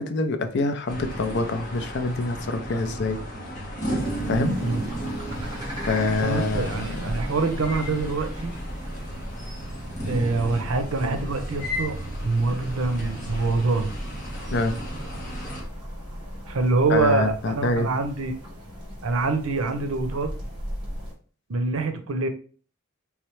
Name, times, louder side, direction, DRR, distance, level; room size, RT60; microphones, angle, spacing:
voice 1, 0.0-3.2 4.3-4.6 5.9-6.8 14.5-14.7 16.9-17.9, left 3 dB, 55° left, 8 dB, 0.5 m, -25 dB
sound 1, 0.9-15.6, right 1 dB, 40° left, 1.2 m, -34 dB
sound 2, 4.0-21.1, equal, 20° right, 1.3 m, -37 dB
voice 2, 6.2-8.5 10.1-12.0 12.2-13.9 16.5-18.4 19.0-20.3 21.5-22.3, right 3 dB, 80° right, 7 dB, 0.6 m, -25 dB
3.5 x 3.2 x 3.1 m, 0.41 s
head